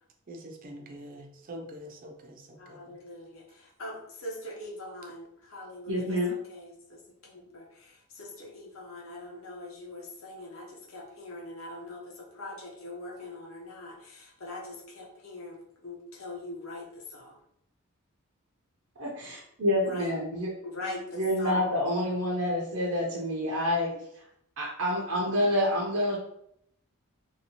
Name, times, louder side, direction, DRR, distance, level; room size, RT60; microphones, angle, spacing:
voice 1, 0.3-3.0, equal, 40° right, 3 dB, 0.5 m, -45 dB
voice 2, 2.6-7.0 7.3-15.6 15.8-17.4 19.8-20.1 20.6-21.7, left 2 dB, 65° left, -3 dB, 1.0 m, -42 dB
voice 3, 5.9-6.3 19.0-20.5 21.2-23.9 24.6-26.2, left 1 dB, 75° right, -4 dB, 0.7 m, -28 dB
3.0 x 2.8 x 2.9 m, 0.75 s
head